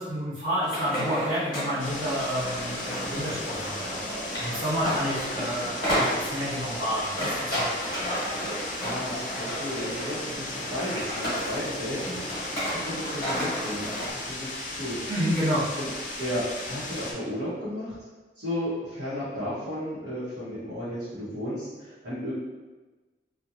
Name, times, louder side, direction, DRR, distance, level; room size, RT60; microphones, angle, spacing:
voice 1, 0.0-4.0 4.4-7.9 15.1-15.6, equal, 50° right, -12 dB, 0.7 m, -30 dB
sound 1, 0.6-14.1, equal, 25° left, 0.9 m, -32 dB
sound 2, 1.8-17.1, left 2 dB, 45° left, 0.4 m, -36 dB
voice 2, 8.8-12.4 12.7-15.1 15.5-15.9 16.2-18.0 18.4-22.3, equal, 90° right, -12 dB, 0.9 m, -34 dB
2.7 x 2.1 x 2.4 m, 1.2 s
head